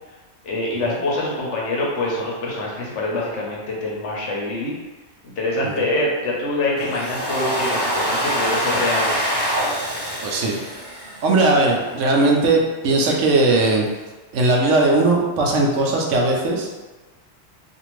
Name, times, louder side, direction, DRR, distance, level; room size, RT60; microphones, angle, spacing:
voice 1, 0.4-4.7 5.2-9.2, left 2 dB, 75° left, -3 dB, 1.0 m, -25 dB
Domestic sounds home sounds, 6.8-11.7, equal, 20° left, 1.0 m, -25 dB
voice 2, 10.2-10.6 11.2-13.8 14.3-16.7, right 2 dB, 90° right, 0 dB, 0.9 m, -18 dB
2.6 x 2.5 x 3.0 m, 1.2 s
omnidirectional pair, 1.2 m